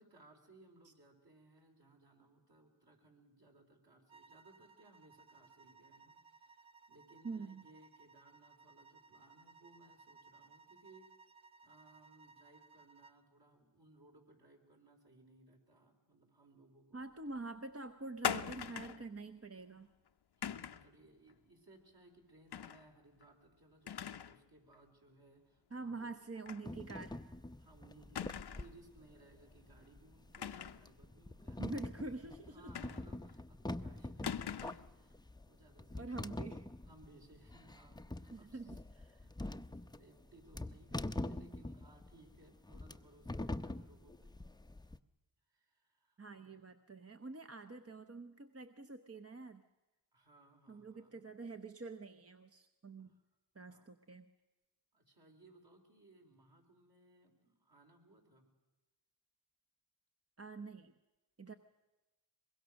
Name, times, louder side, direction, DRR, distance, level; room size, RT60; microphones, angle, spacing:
voice 1, 0.0-11.1 11.6-17.0 20.4-26.2 27.6-31.9 32.5-36.4 36.8-38.8 39.1-44.3 44.8-45.0 45.5-46.6 50.1-51.3 53.0-53.2 53.6-53.9 54.9-58.5, right 2 dB, 50° right, 1 dB, 4.6 m, -64 dB
sound 1, 4.1-13.2, right 4 dB, 90° right, 1.0 m, -62 dB
voice 2, 7.2-7.6 16.9-19.9 25.7-27.2 31.6-32.5 36.0-36.6 38.3-39.2 46.2-49.6 50.7-53.1 53.5-54.3 60.4-60.9 61.4-61.5, right 3 dB, 30° right, 8 dB, 0.9 m, -46 dB
sound 2, 18.2-19.1 20.4-20.9 22.5-22.8 23.2-23.3 23.9-24.4 24.7-24.8 26.5-26.7 27.0-27.1 28.2-28.8 30.3-30.9 32.8-33.3 34.2-34.9, left 8 dB, 55° left, 0.7 m, -41 dB
sound 3, 26.6-45.0, left 2 dB, 10° left, 0.6 m, -45 dB
24.0 x 21.5 x 6.4 m, 1.1 s
cardioid pair, 55°, 46 cm